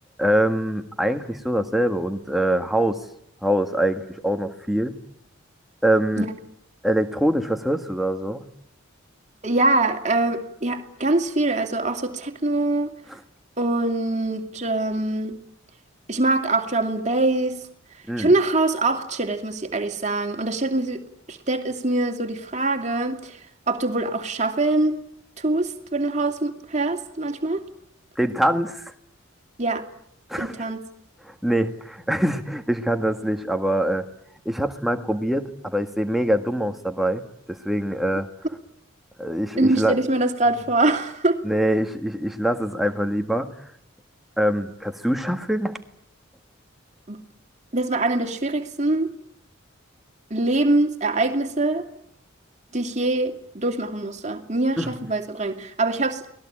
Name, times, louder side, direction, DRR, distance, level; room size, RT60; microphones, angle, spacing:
voice 1, 0.2-3.0 3.4-5.0 5.8-6.3 6.8-8.4 13.1-13.2 18.1-18.3 28.2-28.9 30.3-30.7 31.2-34.1 34.4-37.2 37.5-38.3 39.2-40.0 41.4-43.5 44.4-45.7 54.8-54.9, right 1 dB, ahead, 1.6 m, -24 dB
voice 2, 9.4-12.9 13.6-15.4 16.1-17.6 18.2-21.0 21.3-23.4 23.7-25.0 25.4-27.6 29.6-29.8 30.4-30.8 39.6-41.4 47.1-47.2 47.7-49.1 50.3-51.9 52.7-56.2, right 2 dB, 35° right, 2.5 m, -23 dB
30.0 x 20.0 x 8.7 m
head